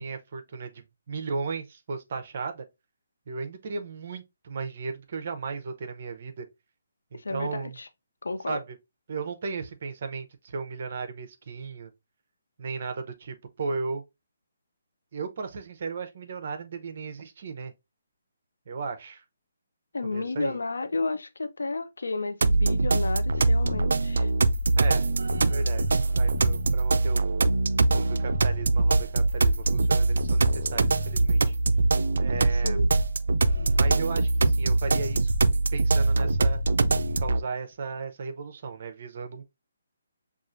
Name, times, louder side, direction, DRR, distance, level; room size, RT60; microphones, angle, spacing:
voice 1, 0.0-2.6 3.3-6.5 7.1-7.8 8.5-8.8 9.1-11.9 12.6-14.0 15.1-17.7 18.7-19.2 20.0-20.6 24.8-25.1 25.5-27.4 27.9-31.5 32.2-32.8 33.7-35.3 35.7-36.6 37.1-39.4, right 4 dB, 50° right, 0.7 m, -35 dB
voice 2, 7.1-7.9 8.2-8.6 19.9-24.3 32.4-32.9, left 3 dB, 90° left, 0.5 m, -32 dB
sound 1, 22.4-37.4, right 2 dB, 75° right, 0.3 m, -23 dB
5.9 x 2.4 x 2.5 m
hypercardioid pair, 160°, 0 cm